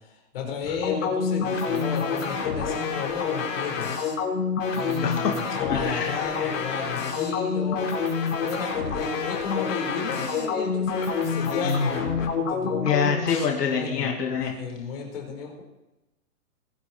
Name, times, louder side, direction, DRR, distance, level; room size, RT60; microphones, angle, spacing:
voice 1, 0.1-3.9 4.7-7.9 8.4-12.1 12.4-12.9 13.6-15.6, left 5 dB, 35° left, 0 dB, 4.3 m, -33 dB
sound 1, 0.8-13.4, left 5 dB, 50° left, 4.5 m, -27 dB
voice 2, 5.0-5.4 5.7-6.6 12.8-14.5, left 6 dB, 75° left, 1 dB, 2.4 m, -26 dB
22.0 x 9.1 x 4.4 m, 0.99 s
hypercardioid pair, 175°, 47 cm